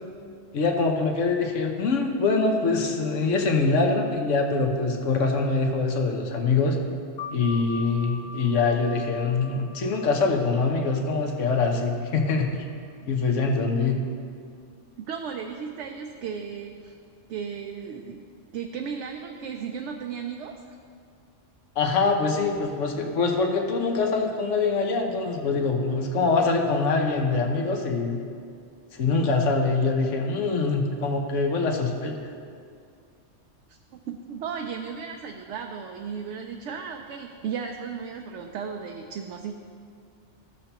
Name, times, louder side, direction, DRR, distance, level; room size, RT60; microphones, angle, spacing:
voice 1, 0.5-6.8 7.3-12.5 13.0-14.0 21.8-28.2 28.9-32.2, left 4 dB, 85° left, 3 dB, 1.2 m, -24 dB
sound 1, 7.2-12.4, left 4 dB, 65° left, 0.7 m, -42 dB
voice 2, 15.1-16.9 17.3-18.2 18.5-20.8 33.7-39.6, right 6 dB, 75° right, 3 dB, 0.9 m, -35 dB
15.5 x 6.7 x 2.9 m, 2.3 s
omnidirectional pair, 1.2 m